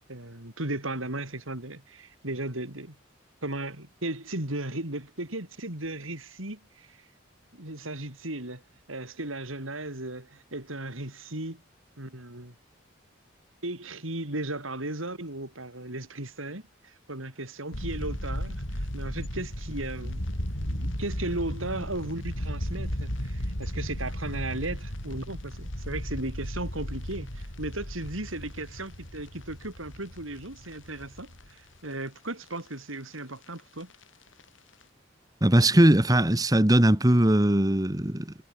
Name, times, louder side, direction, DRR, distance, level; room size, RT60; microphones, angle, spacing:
voice 1, 0.1-3.0 3.4-7.0 7.5-8.6 8.9-11.6 12.0-12.6 13.6-20.3 20.7-33.9, right 2 dB, 90° right, 5.8 m, -36 dB
sound 1, 17.7-31.8 32.2-32.3 32.4-32.7 33.6-34.0 34.4-34.5 34.8-34.9, equal, 75° left, 7.3 m, -35 dB
voice 2, 35.4-38.3, right 1 dB, 20° right, 1.4 m, -20 dB
head